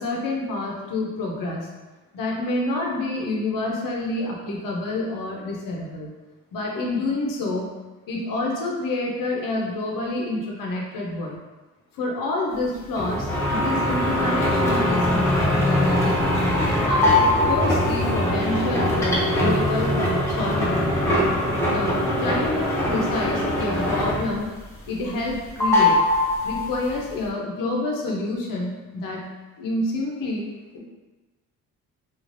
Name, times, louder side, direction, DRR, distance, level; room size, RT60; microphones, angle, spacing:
voice 1, 0.0-1.7 2.1-6.1 6.5-7.7 8.1-11.4 11.9-16.4 16.9-20.0 20.3-21.2 21.7-24.5 24.9-26.0 26.4-29.3 29.6-30.5 30.7-30.8, left 2 dB, 65° left, -2 dB, 0.7 m, -28 dB
sound 1, 13.0-24.5 24.8-25.3 25.6-26.9, left 1 dB, 10° left, 0.6 m, -22 dB
3.2 x 2.4 x 2.5 m, 1.2 s
cardioid pair, 110°, 35 cm